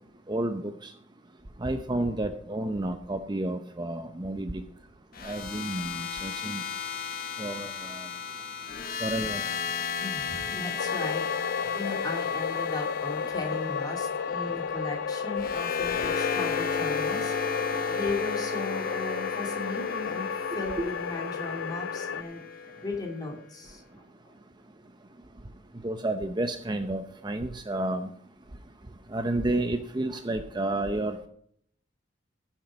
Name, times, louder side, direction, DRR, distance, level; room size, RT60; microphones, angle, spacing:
voice 1, 0.3-0.9 1.6-4.6 5.2-6.6 7.4-8.1 9.0-9.4 25.8-28.1 29.1-31.3, right 1 dB, 25° right, 0.7 m, -31 dB
sound 1, 5.1-23.3, left 6 dB, 50° left, 1.1 m, -34 dB
voice 2, 10.0-11.2 11.8-17.3 17.8-22.4 22.8-23.8, left 2 dB, 20° left, 2.7 m, -36 dB
sound 2, 10.8-22.2, left 6 dB, 80° left, 0.5 m, -32 dB
15.0 x 7.4 x 5.1 m
head